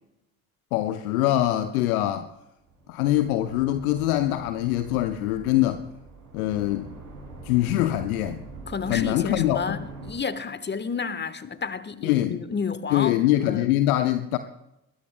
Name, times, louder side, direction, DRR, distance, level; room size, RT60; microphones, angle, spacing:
voice 1, 0.7-2.3 2.9-5.9 6.3-6.9 7.4-8.4 8.9-9.8 12.0-12.5 12.9-14.4, left 14 dB, 70° left, 0.8 m, -23 dB
sound 1, 2.6-10.1, right 2 dB, 85° right, 7.6 m, -43 dB
voice 2, 8.7-9.8 10.0-13.2 13.4-13.7, left 5 dB, 25° left, 1.2 m, -31 dB
25.5 x 21.5 x 2.2 m
figure-of-eight pair, 40°, 44 cm